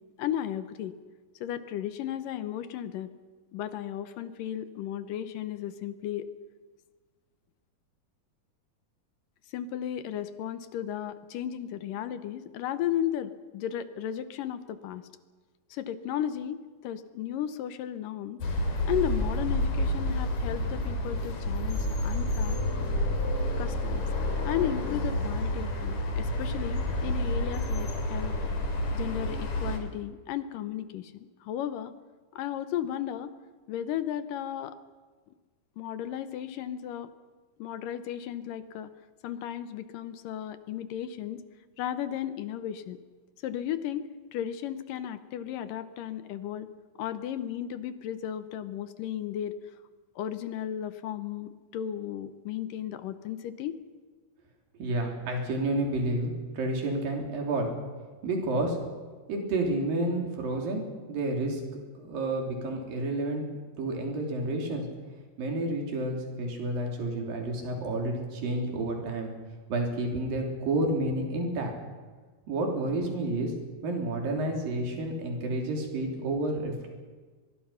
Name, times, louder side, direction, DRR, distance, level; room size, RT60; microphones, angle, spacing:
voice 1, 0.2-0.9 1.4-3.1 3.5-6.3 9.5-15.0 15.7-18.4 18.9-22.6 23.6-24.0 24.4-28.4 28.9-31.1 31.4-31.9 32.4-33.3 33.7-34.8 35.8-37.1 37.6-38.9 39.2-41.4 41.8-43.0 43.4-46.7 47.0-49.6 50.2-53.8, left 10 dB, 75° left, 12 dB, 2.4 m, -34 dB
sound 1, 18.4-29.8, left 1 dB, 55° left, 4.1 m, -29 dB
voice 2, 54.8-57.7 58.2-58.8 59.3-60.8 61.1-61.6 61.9-63.5 63.8-64.8 65.4-69.3 69.7-71.7 72.5-73.5 73.8-76.9, right 2 dB, 70° right, 2 dB, 5.0 m, -30 dB
23.0 x 22.5 x 5.7 m, 1.4 s
omnidirectional pair, 4.1 m